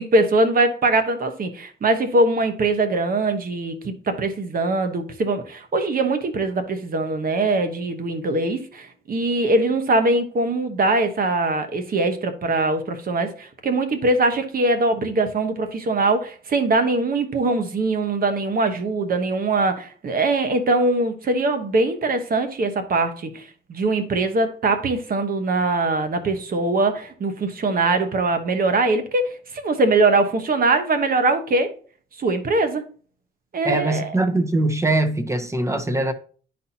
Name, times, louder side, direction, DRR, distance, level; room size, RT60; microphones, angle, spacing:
voice 1, 0.0-31.7 32.2-32.9 33.5-34.2, right 2 dB, 45° right, 1.1 m, -22 dB
voice 2, 33.6-36.1, right 2 dB, 15° right, 0.9 m, -22 dB
11.0 x 4.3 x 2.8 m
cardioid pair, 90°, 20 cm